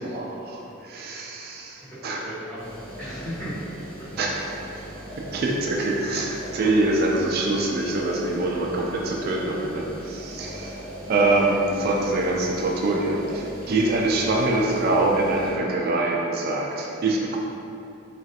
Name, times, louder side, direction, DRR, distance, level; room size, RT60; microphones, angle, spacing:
voice 1, 0.0-2.2 4.2-4.8 5.2-17.4, right 2 dB, 50° right, -2 dB, 0.3 m, -24 dB
voice 2, 1.3-3.6 4.0-4.1 4.6-5.0, equal, 10° left, -14 dB, 1.1 m, -38 dB
sound 1, 2.6-15.5, equal, 25° right, 0.9 m, -40 dB
3.1 x 2.4 x 2.8 m, 2.8 s
head